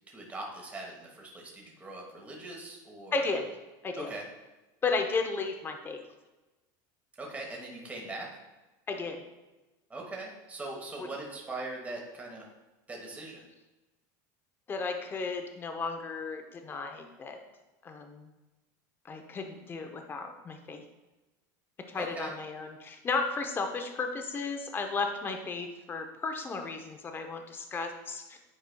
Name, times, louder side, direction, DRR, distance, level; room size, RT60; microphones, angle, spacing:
voice 1, 0.1-3.3 4.0-4.2 7.2-8.3 9.9-12.4 12.9-13.4 22.0-22.3, right 2 dB, 15° right, -1 dB, 1.2 m, -41 dB
voice 2, 3.1-3.5 3.8-4.1 4.8-6.0 8.9-9.2 11.0-11.1 14.7-17.4 17.8-18.3 19.0-20.8 21.9-28.4, left 4 dB, 20° left, 5 dB, 0.7 m, -34 dB
9.4 x 4.8 x 2.2 m, 1.1 s
supercardioid pair, 140°, 10 cm